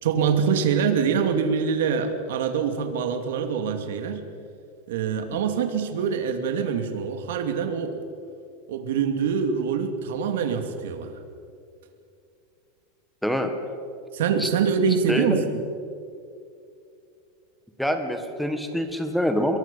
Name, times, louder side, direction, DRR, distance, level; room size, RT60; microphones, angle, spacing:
voice 1, 0.0-4.3 4.9-8.0 8.7-11.2 14.1-15.6, right 6 dB, 85° right, 6 dB, 2.6 m, -25 dB
voice 2, 15.1-15.4 17.8-19.6, equal, ahead, 6 dB, 1.6 m, -25 dB
25.5 x 22.0 x 5.6 m, 2.5 s
supercardioid pair, 175°, 0 cm